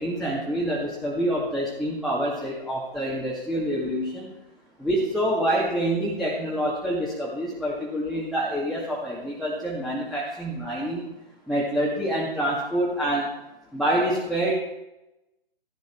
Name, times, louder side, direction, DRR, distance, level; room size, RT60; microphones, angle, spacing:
voice 1, 0.0-4.4 4.8-11.0 11.5-13.3 13.7-14.5, right 1 dB, ahead, -6 dB, 2.2 m, -26 dB
15.5 x 12.0 x 4.6 m, 0.94 s
hypercardioid pair, 145°, 30 cm